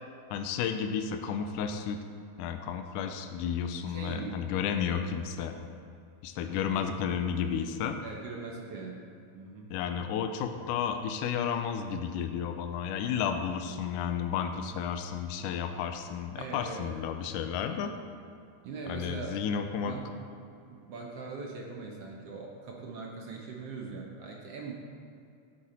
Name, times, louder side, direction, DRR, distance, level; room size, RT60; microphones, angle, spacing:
voice 1, 0.3-2.0 2.4-5.6 6.2-8.0 9.7-17.9 18.9-20.0, left 7 dB, 80° left, 6 dB, 2.1 m, -32 dB
voice 2, 3.9-4.4 4.9-5.2 6.7-6.9 8.0-9.1 9.3-9.7 16.4-16.9 18.6-19.4 19.8-20.0 20.6-24.7, right 4 dB, 60° right, -1 dB, 1.7 m, -41 dB
13.5 x 8.4 x 4.3 m, 2.5 s
omnidirectional pair, 3.9 m